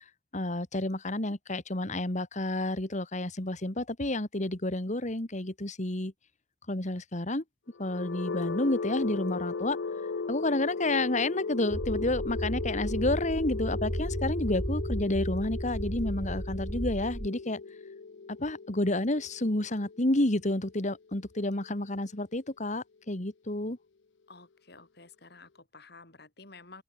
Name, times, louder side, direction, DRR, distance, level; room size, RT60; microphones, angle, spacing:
voice 1, 0.3-6.1 6.7-7.4 7.8-9.8 10.3-17.6 18.3-23.8, left 1 dB, 40° left, 2.2 m, -30 dB
sound 1, 7.7-21.6, left 4 dB, 90° left, 0.6 m, -37 dB
sound 2, 11.7-17.3, right 1 dB, 20° right, 1.1 m, -34 dB
voice 2, 24.3-26.8, left 3 dB, 60° left, 7.5 m, -52 dB
open air
head